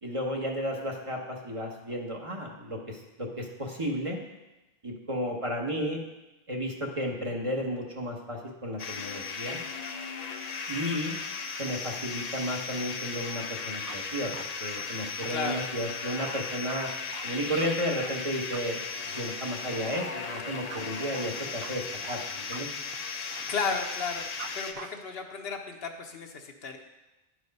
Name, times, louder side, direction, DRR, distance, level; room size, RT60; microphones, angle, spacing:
voice 1, 0.0-4.2 4.8-6.0 6.5-9.6 10.7-11.2 11.6-14.3 14.6-16.9 17.2-18.8 19.1-22.7, equal, 30° right, -1 dB, 1.2 m, -33 dB
sound 1, 8.8-24.7, left 5 dB, 45° left, 0.6 m, -36 dB
sound 2, 13.6-24.5 24.8-24.9, right 6 dB, 65° right, 0.8 m, -46 dB
voice 2, 23.2-24.3 24.5-26.8, left 5 dB, 75° left, 4 dB, 1.1 m, -34 dB
10.5 x 4.8 x 5.3 m, 1.0 s
omnidirectional pair, 1.0 m